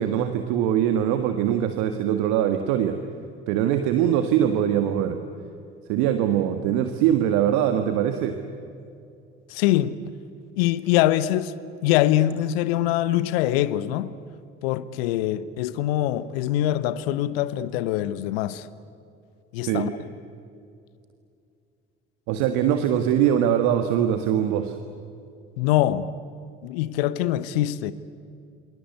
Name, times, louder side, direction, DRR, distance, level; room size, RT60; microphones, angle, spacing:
voice 1, 0.0-3.0 3.5-5.2 5.9-8.4 19.7-20.0 22.3-24.7, right 10 dB, 65° right, 1.7 m, -22 dB
voice 2, 9.5-10.0 10.6-11.6 11.8-14.1 14.6-18.7 19.5-20.1 25.6-26.1 26.6-27.9, left 13 dB, 70° left, 1.1 m, -23 dB
28.5 x 26.0 x 8.1 m
figure-of-eight pair, 55°, 31 cm